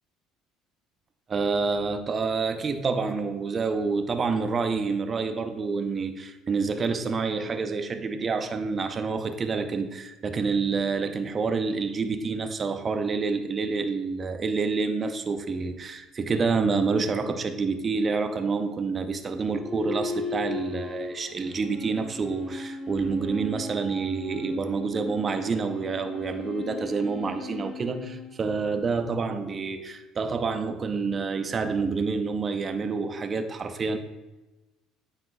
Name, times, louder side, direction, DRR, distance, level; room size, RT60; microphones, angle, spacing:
voice 1, 1.3-34.0, right 4 dB, 30° right, 8 dB, 0.7 m, -28 dB
sound 1, 19.4-29.1, left 2 dB, 30° left, 1.4 m, -37 dB
9.4 x 7.8 x 2.3 m, 1.1 s
cardioid pair, 110°, 0 cm